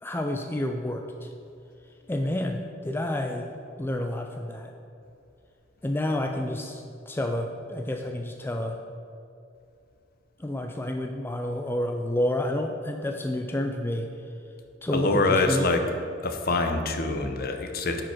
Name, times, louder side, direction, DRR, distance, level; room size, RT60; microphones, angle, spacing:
voice 1, 0.0-1.3 2.1-3.5 3.8-4.7 5.8-8.8 10.4-14.1 14.8-15.7, left 1 dB, 10° left, 4 dB, 0.4 m, -29 dB
voice 2, 14.9-15.8 16.2-18.0, left 3 dB, 50° left, 5 dB, 0.8 m, -25 dB
10.0 x 5.0 x 4.5 m, 2.6 s
head